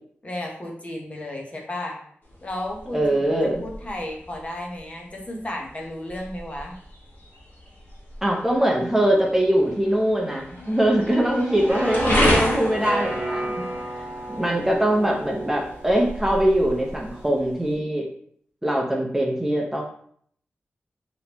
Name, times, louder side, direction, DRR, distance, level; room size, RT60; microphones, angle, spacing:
voice 1, 0.2-2.0 2.4-3.2 3.6-6.8 14.4-14.6, left 1 dB, 30° left, 0 dB, 0.8 m, -33 dB
sound 1, 2.2-17.7, left 1 dB, 55° left, 1.3 m, -31 dB
voice 2, 2.9-3.6 8.2-13.6 14.3-18.1 18.6-19.8, right 1 dB, 10° right, -1 dB, 0.6 m, -22 dB
sound 2, 11.7-17.3, right 1 dB, 50° right, 1.0 m, -32 dB
3.5 x 2.9 x 2.9 m, 0.63 s
wide cardioid pair, 90°, 4 cm